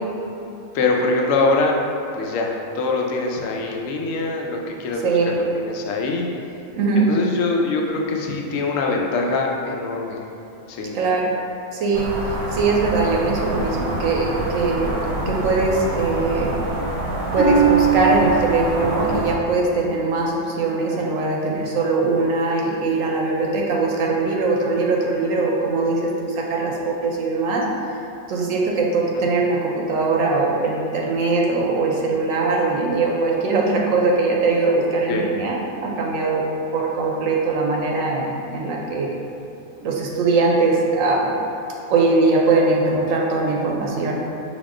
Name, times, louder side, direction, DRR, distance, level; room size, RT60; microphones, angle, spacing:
voice 1, 0.7-1.8 2.1-6.3 7.0-10.2 10.7-11.0 18.8-18.9 29.1-29.2 35.1-35.3, left 3 dB, 75° left, 0 dB, 0.9 m, -23 dB
voice 2, 5.0-5.4 6.7-7.1 10.9-11.3 11.7-16.6 17.3-27.7 28.3-36.4 36.7-39.1 39.8-41.3 41.9-44.2, right 3 dB, 75° right, -1 dB, 1.0 m, -21 dB
sound 1, 11.9-19.3, right 1 dB, 45° right, 0.5 m, -27 dB
Harp, 17.4-21.1 21.6-22.1 22.7-22.8, right 7 dB, 15° left, 0.8 m, -23 dB
5.3 x 3.5 x 2.5 m, 2.8 s
omnidirectional pair, 1.4 m